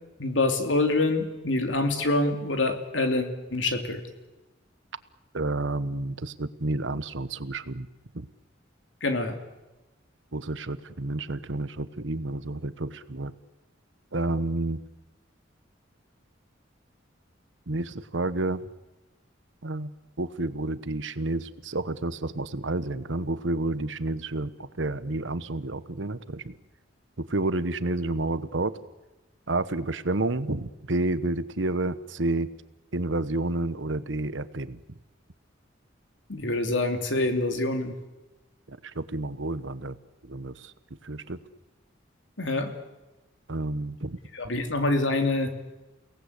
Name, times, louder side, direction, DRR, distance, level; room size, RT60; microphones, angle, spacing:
voice 1, 0.2-4.0 9.0-9.4 36.3-37.9 42.4-42.7 44.3-45.5, left 2 dB, 75° left, 6 dB, 3.1 m, -26 dB
voice 2, 5.3-7.9 8.1-8.3 10.3-13.3 14.1-14.8 17.7-18.7 19.6-26.5 27.2-28.7 29.5-32.5 32.9-34.8 38.7-40.0 40.2-40.7 41.0-41.4 43.5-44.2, right 2 dB, 75° right, 14 dB, 1.2 m, -30 dB
30.0 x 18.0 x 8.3 m, 1.1 s
head